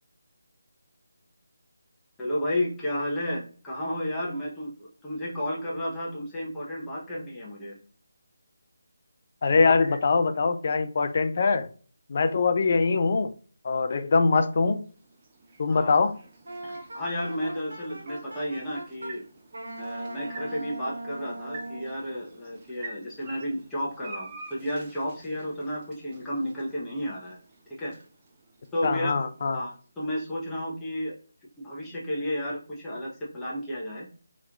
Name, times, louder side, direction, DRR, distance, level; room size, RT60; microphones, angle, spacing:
voice 1, 2.2-7.8 9.7-10.0 15.7-15.9 16.6-19.2 19.8-27.4 27.7-27.9 28.7-29.1 29.5-31.2 31.6-34.1, equal, 10° left, -7 dB, 0.8 m, -32 dB
voice 2, 9.4-11.7 12.1-13.3 13.6-14.8 15.6-16.2 28.8-29.6, left 4 dB, 45° left, 10 dB, 0.4 m, -23 dB
sound 1, 14.1-30.2, right 2 dB, 25° right, 0.7 m, -49 dB
Wind instrument woodwind instrument, 16.5-19.1 19.5-21.9, right 2 dB, 80° right, 0.9 m, -39 dB
3.2 x 3.0 x 2.4 m, 0.41 s
figure-of-eight pair, 165°, 0 cm